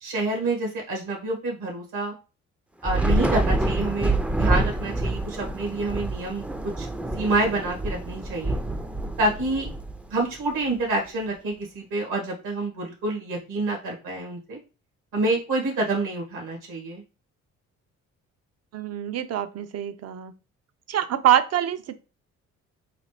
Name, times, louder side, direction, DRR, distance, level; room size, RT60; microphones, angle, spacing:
voice 1, 0.0-2.1 2.8-6.5 6.8-6.9 7.1-8.6 9.2-9.7 10.1-14.6 15.1-17.0, right 2 dB, 85° right, 0 dB, 1.9 m, -27 dB
Thunder / Rain, 2.8-10.4, right 2 dB, 5° right, 0.4 m, -27 dB
voice 2, 18.7-20.3 20.9-21.9, right 11 dB, 55° right, 11 dB, 0.5 m, -24 dB
4.0 x 2.4 x 3.3 m, 0.32 s
cardioid pair, 90°, 30 cm